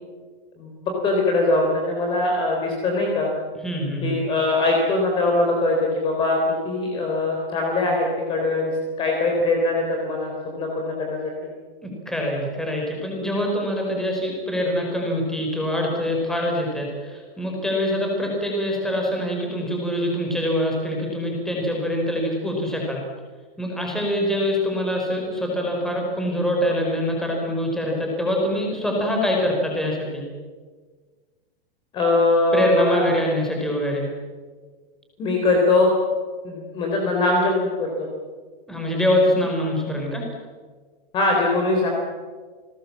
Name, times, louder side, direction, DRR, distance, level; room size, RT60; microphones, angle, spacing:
voice 1, 0.6-3.3 4.0-6.4 6.6-8.7 9.0-11.5 31.9-33.0 35.2-35.9 36.4-37.5 37.8-38.1 41.1-41.9, left 2 dB, 15° left, 0 dB, 3.8 m, -22 dB
voice 2, 3.6-4.2 11.8-23.0 23.6-30.2 32.5-34.1 38.7-40.3, left 1 dB, ahead, -1 dB, 4.8 m, -24 dB
29.5 x 20.0 x 7.5 m, 1.5 s
supercardioid pair, 175°, 29 cm